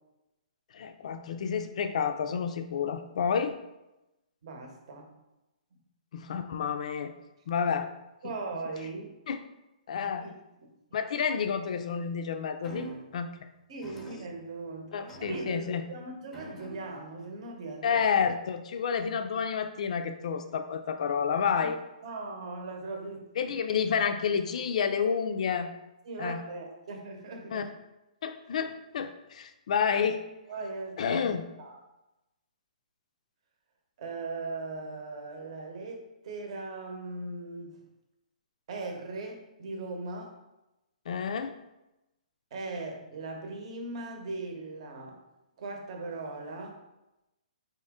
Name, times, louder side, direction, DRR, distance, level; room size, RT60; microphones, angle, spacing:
voice 1, 0.7-3.6 6.1-7.1 7.5-7.9 8.2-8.3 9.3-9.4 9.9-10.3 10.9-13.3 14.9-15.8 17.8-21.8 23.4-25.7 26.2-26.4 27.5-27.6 28.2-30.2 31.0-31.4 41.1-41.5, left 6 dB, 55° left, 8 dB, 0.4 m, -29 dB
voice 2, 4.4-5.1 8.2-9.1 10.0-10.3 10.6-10.7 13.7-18.0 21.6-21.8 22.0-23.5 26.0-27.7 30.5-31.2 31.6-31.8 34.0-37.8 38.7-40.3 42.5-45.2 45.6-46.8, right 3 dB, 45° right, 2 dB, 0.9 m, -39 dB
sound 1, 12.6-13.2 13.8-14.7 15.1-15.9 16.3-17.1 18.0-18.3, right 3 dB, 5° left, 0.6 m, -45 dB
4.3 x 3.0 x 3.5 m, 0.96 s
hypercardioid pair, 160°, 4 cm